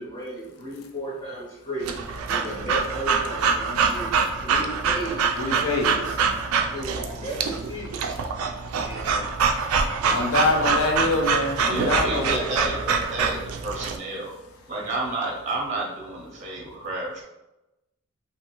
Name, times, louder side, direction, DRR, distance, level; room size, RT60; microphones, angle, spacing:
voice 1, 0.0-1.9 2.3-4.1 4.4-6.1 6.7-8.0 8.8-9.3 10.0-10.3, right 1 dB, 25° left, -6 dB, 0.7 m, -35 dB
Breathing / Dog, 1.8-14.0, right 5 dB, 80° right, 0.3 m, -25 dB
voice 2, 5.4-6.2 8.6-8.7 10.1-12.4, left 2 dB, 80° left, 3 dB, 0.5 m, -25 dB
voice 3, 11.7-14.3 14.7-17.2, right 2 dB, 35° right, -2 dB, 0.6 m, -30 dB
2.6 x 2.4 x 2.9 m, 0.96 s
head